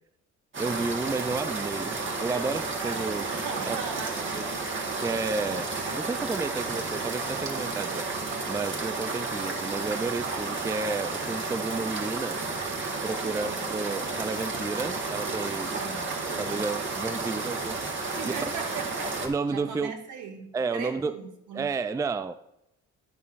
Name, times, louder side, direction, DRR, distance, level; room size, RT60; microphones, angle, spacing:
sound 1, 0.5-19.3, right 3 dB, 40° right, 1.6 m, -32 dB
voice 1, 0.6-3.2 3.7-3.8 4.3-4.5 5.0-5.6 5.9-8.1 8.5-12.4 13.0-15.8 16.4-17.8 19.2-19.9 20.5-21.2 21.5-22.3, right 4 dB, 10° right, 12 dB, 0.3 m, -31 dB
voice 2, 2.8-4.4 5.4-5.7 13.2-13.6 15.7-16.6 18.1-19.2 19.5-21.7, right 6 dB, 80° right, 3 dB, 1.4 m, -39 dB
11.0 x 8.5 x 2.5 m, 0.82 s
cardioid pair, 90°, 30 cm